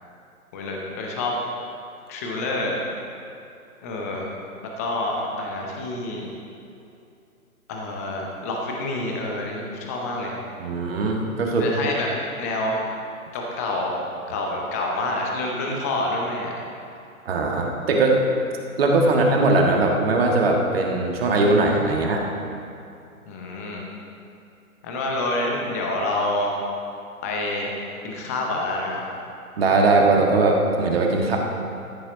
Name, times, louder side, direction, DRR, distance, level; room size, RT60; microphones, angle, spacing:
voice 1, 0.5-1.3 2.1-2.8 3.8-4.3 4.8-6.3 7.7-10.4 11.6-12.1 12.3-12.8 13.3-14.0 14.3-16.5 18.7-19.2 23.3-23.8 24.8-26.5 27.2-27.7 28.0-29.1, left 2 dB, 10° left, -1 dB, 0.6 m, -27 dB
voice 2, 10.6-11.9 17.2-18.2 18.8-22.3 29.6-31.4, right 2 dB, 40° right, 1 dB, 1.6 m, -20 dB
13.5 x 7.2 x 5.0 m, 2.6 s
figure-of-eight pair, 135°, 44 cm